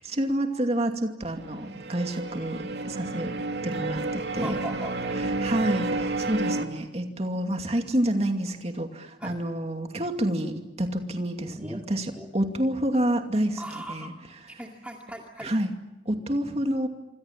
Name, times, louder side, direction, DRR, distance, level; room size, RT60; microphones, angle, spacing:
voice 1, 0.1-3.4 3.6-4.5 5.4-13.6 13.9-14.1 15.4-15.7 16.1-16.9, right 1 dB, 35° right, 5 dB, 2.5 m, -28 dB
sound 1, 1.3-6.7, right 2 dB, 75° right, 2.4 m, -31 dB
voice 2, 4.4-5.3 9.2-9.4 11.5-11.8 12.1-12.3 13.6-14.1 14.6-15.5, right 1 dB, 10° right, 0 dB, 2.4 m, -39 dB
26.5 x 26.5 x 7.5 m, 0.94 s
head